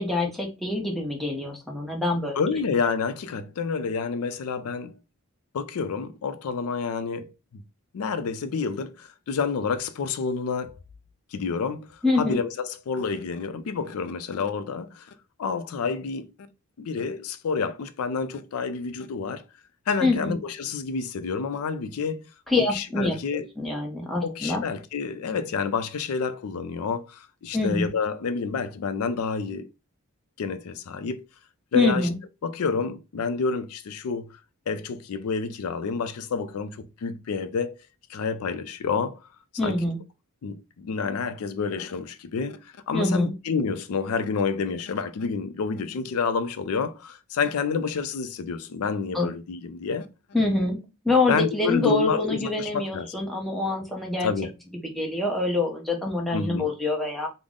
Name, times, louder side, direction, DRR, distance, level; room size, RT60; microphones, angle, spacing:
voice 1, 0.0-2.4 12.0-12.4 20.0-20.4 22.5-24.6 27.5-27.9 31.7-32.2 39.6-40.0 42.9-43.3 49.1-49.3 50.3-54.3 54.9-57.3, left 2 dB, ahead, 0.6 m, -25 dB
voice 2, 2.4-4.9 5.5-7.6 7.9-10.8 11.3-15.1 15.4-16.3 16.8-19.4 19.9-22.3 22.6-23.4 24.2-29.6 30.4-31.2 31.7-32.1 32.4-34.4 34.7-37.7 38.1-39.2 39.6-39.8 40.4-50.1 51.3-53.2 54.2-54.5 56.3-56.7, left 5 dB, 75° left, 0.4 m, -29 dB
3.5 x 2.0 x 3.6 m
head